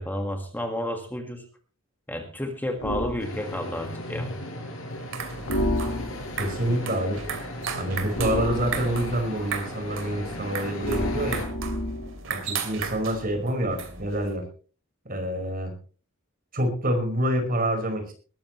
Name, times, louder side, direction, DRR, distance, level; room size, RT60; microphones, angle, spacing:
voice 1, 0.0-1.4 2.1-4.3, left 1 dB, 10° left, 4 dB, 1.8 m, -31 dB
sound 1, 2.8-3.2 5.5-6.4 8.1-9.2 10.8-12.2, left 1 dB, 85° left, 2.5 m, -29 dB
sound 2, 3.2-11.5, left 1 dB, 70° left, 7.5 m, -37 dB
sound 3, 4.9-14.4, right 6 dB, 65° right, 2.8 m, -36 dB
voice 2, 6.4-7.2 7.7-11.5 12.3-14.4 15.0-15.7 16.5-18.1, right 1 dB, 45° right, 5 dB, 5.1 m, -27 dB
20.5 x 14.0 x 3.1 m, 0.38 s
head